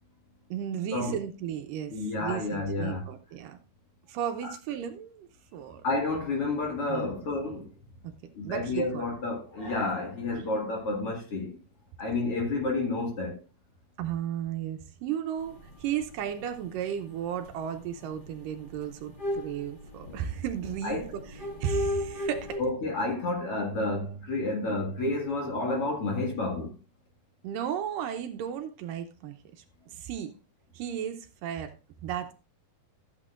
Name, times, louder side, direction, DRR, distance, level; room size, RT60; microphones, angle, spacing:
voice 1, 0.5-3.6 4.1-5.8 6.9-7.1 8.0-8.1 8.4-9.0 10.4-10.5 14.0-22.6 27.4-29.6 29.9-30.3 30.7-31.8 32.0-32.3, right 9 dB, 75° right, 2.3 m, -34 dB
voice 2, 1.9-3.1 4.4-4.5 5.8-7.7 8.3-11.6 12.0-13.4 20.8-21.1 22.6-26.7, left 2 dB, 45° left, 2.6 m, -30 dB
sound 1, 15.4-22.6, left 1 dB, 25° left, 1.0 m, -35 dB
14.0 x 8.2 x 2.5 m
omnidirectional pair, 4.1 m